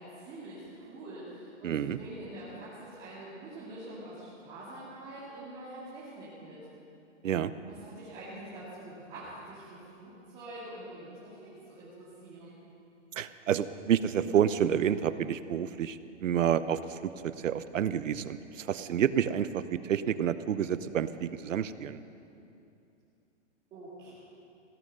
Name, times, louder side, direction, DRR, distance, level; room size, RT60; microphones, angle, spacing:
voice 1, 0.0-6.6 7.7-12.6 23.7-24.1, right 1 dB, 15° right, -10 dB, 2.2 m, -45 dB
voice 2, 1.6-2.0 7.2-7.5 13.2-22.0, right 9 dB, 85° right, 14 dB, 0.8 m, -29 dB
16.0 x 11.0 x 6.7 m, 2.7 s
hypercardioid pair, 175°, 37 cm